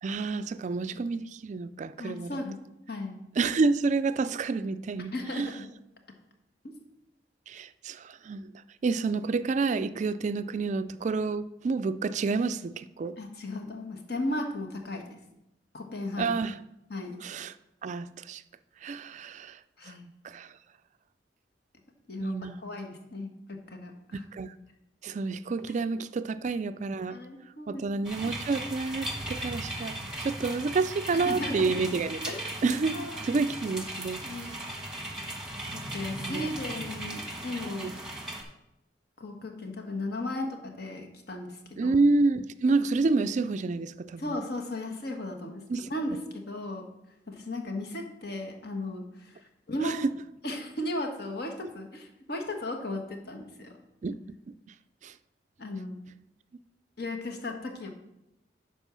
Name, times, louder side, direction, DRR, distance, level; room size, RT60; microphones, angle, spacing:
voice 1, 0.0-2.3 3.4-5.5 7.5-8.5 8.8-13.2 16.2-16.6 17.2-17.5 17.8-18.4 18.8-19.6 19.9-20.0 20.2-20.5 22.2-22.6 24.3-24.5 25.0-27.2 27.7-32.3 32.6-34.2 36.2-36.5 37.8-37.9 41.8-44.4 45.7-45.9 49.8-50.1 54.0-54.2 55.0-55.1, right 4 dB, 40° right, 13 dB, 0.3 m, -29 dB
voice 2, 2.0-2.6 2.9-3.2 5.0-5.7 6.6-6.8 13.2-15.2 15.7-16.4 16.9-17.2 19.8-20.1 22.1-22.4 22.6-24.2 27.1-28.1 31.1-31.7 32.3-32.6 32.9-33.2 34.2-34.6 35.7-38.0 39.2-42.0 44.2-45.6 45.9-46.9 47.3-50.0 50.4-53.7 55.6-56.0 57.0-57.9, left 1 dB, 60° left, 4 dB, 1.4 m, -36 dB
sound 1, 28.0-38.4, right 1 dB, 5° right, 1.3 m, -37 dB
11.0 x 4.4 x 6.1 m, 0.87 s
head